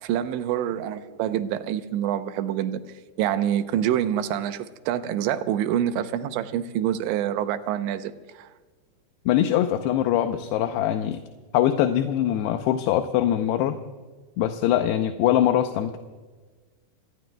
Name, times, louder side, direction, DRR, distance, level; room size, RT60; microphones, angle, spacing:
voice 1, 0.0-2.8 3.2-8.5, right 10 dB, 90° right, 10 dB, 3.1 m, -26 dB
voice 2, 9.3-11.2 11.5-13.8 14.4-16.0, left 11 dB, 80° left, 6 dB, 2.7 m, -22 dB
29.5 x 19.0 x 2.3 m, 1.4 s
omnidirectional pair, 5.1 m